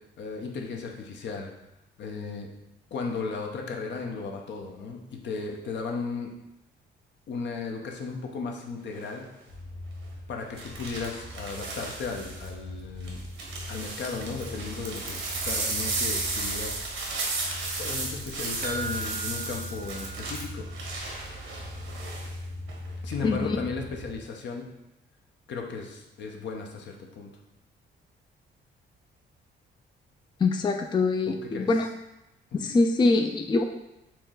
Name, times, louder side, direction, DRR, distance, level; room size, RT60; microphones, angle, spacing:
voice 1, 0.2-1.5 2.0-2.5 2.9-6.3 7.3-9.3 10.3-13.2 13.7-16.8 17.7-20.6 23.0-24.6 25.5-27.3 31.3-31.7, left 4 dB, 65° left, 1 dB, 0.8 m, -35 dB
sound 1, 8.9-9.2 10.6-12.5 13.0-22.3 22.7-23.1, right 3 dB, 85° right, 1.1 m, -34 dB
sound 2, 9.5-24.2, left 1 dB, 85° left, 1.6 m, -41 dB
sound 3, 18.6-21.2 21.5-21.6 22.0-22.1, right 4 dB, 45° right, 0.5 m, -39 dB
voice 2, 23.2-23.6 30.4-31.9 32.5-33.6, left 3 dB, 25° left, 4 dB, 0.4 m, -24 dB
4.5 x 3.1 x 3.8 m, 0.90 s
cardioid pair, 90°, 20 cm